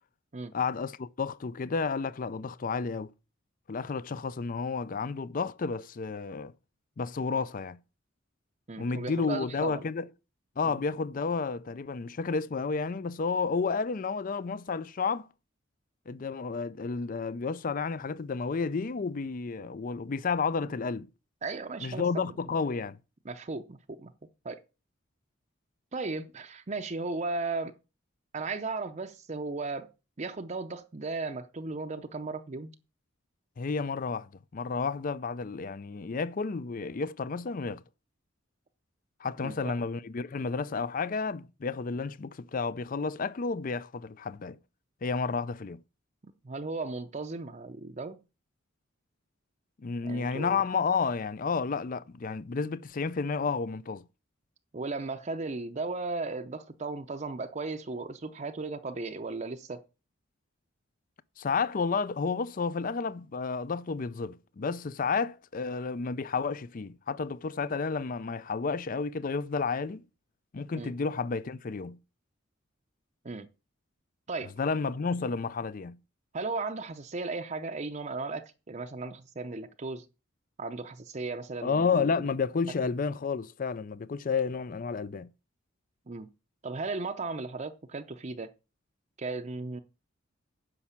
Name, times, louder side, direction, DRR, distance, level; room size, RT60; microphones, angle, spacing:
voice 1, 0.5-3.1 3.7-6.5 7.0-7.8 8.8-10.1 10.6-15.3 16.1-21.1 21.8-23.0 33.6-37.8 39.2-44.6 45.0-45.8 49.8-54.0 61.4-70.0 70.5-72.0 74.6-76.0 81.6-85.3, left 5 dB, 40° left, 0.4 m, -31 dB
voice 2, 8.7-9.8 10.6-10.8 21.4-22.3 23.2-24.1 24.4-24.6 25.9-27.7 28.3-29.9 30.2-32.7 39.4-39.7 46.2-48.2 50.0-50.6 54.7-59.8 70.8-70.9 73.2-73.5 74.3-74.5 76.3-80.1 80.6-82.2 86.1-86.3 86.6-88.5 89.2-89.8, right 3 dB, 35° right, 0.6 m, -36 dB
9.9 x 6.0 x 7.2 m
head